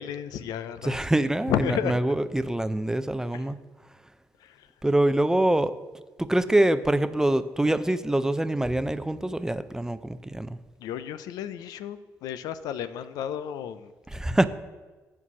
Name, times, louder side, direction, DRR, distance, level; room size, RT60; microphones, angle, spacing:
voice 1, 0.0-2.0 4.4-4.7 10.8-13.9, left 9 dB, 90° left, 12 dB, 0.4 m, -32 dB
voice 2, 0.8-3.6 4.8-5.8 6.2-10.6 14.1-14.5, right 1 dB, 10° right, 13 dB, 0.4 m, -25 dB
8.5 x 4.6 x 6.9 m, 1.3 s
cardioid pair, 80°, 6 cm